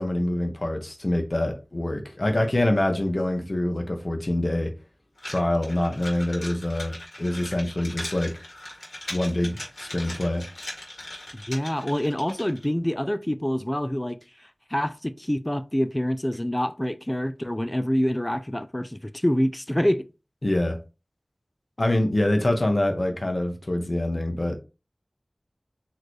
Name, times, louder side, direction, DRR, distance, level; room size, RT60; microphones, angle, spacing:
voice 1, 0.0-4.7 5.3-8.3 9.1-10.4 20.4-20.8 21.8-24.6, left 1 dB, 55° left, 1.0 m, -25 dB
sound 1, 5.2-12.7, left 1 dB, 80° left, 1.7 m, -39 dB
voice 2, 11.3-20.0, equal, 20° left, 0.4 m, -26 dB
4.3 x 3.1 x 3.1 m
wide cardioid pair, 40°, 0 cm